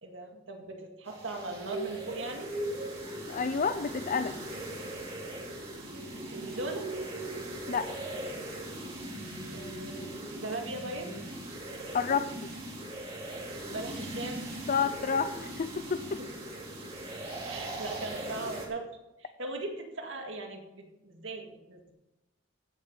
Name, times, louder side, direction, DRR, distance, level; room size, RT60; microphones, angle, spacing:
voice 1, 0.0-2.5 5.8-6.9 9.5-11.1 13.7-14.4 17.4-18.8 19.2-21.9, right 2 dB, 75° right, 3 dB, 2.0 m, -39 dB
sound 1, 1.0-18.7, right 1 dB, 30° right, 3.2 m, -40 dB
sound 2, 1.4-10.6 10.9-11.2 11.5-11.6, right 2 dB, 15° right, 3.0 m, -43 dB
voice 2, 3.3-4.3 7.7-7.9 11.9-12.3 14.7-16.2, left 6 dB, 40° left, 11 dB, 0.4 m, -29 dB
16.0 x 7.3 x 5.3 m, 0.94 s
head